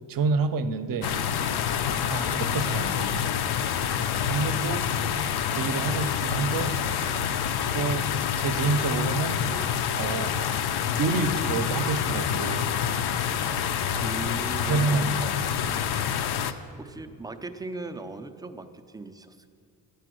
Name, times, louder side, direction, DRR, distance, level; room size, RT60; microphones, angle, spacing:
voice 1, 0.1-1.1 1.6-1.8 2.1-3.3 4.3-4.9 5.5-6.8 7.7-9.4 10.0-10.4 11.0-12.6 13.9-14.0 14.6-15.4 16.4-16.5, right 4 dB, 50° right, 11 dB, 0.7 m, -28 dB
sound 1, 1.0-16.5, left 8 dB, 65° left, 0.6 m, -27 dB
Knock / Wood, 6.3-7.9 8.9-9.0 9.3-9.4, left 3 dB, 90° left, 0.9 m, -44 dB
voice 2, 14.0-14.9 16.8-19.5, right 3 dB, 10° right, 7 dB, 0.3 m, -38 dB
10.5 x 6.8 x 7.7 m, 2.3 s
cardioid pair, 150°, 43 cm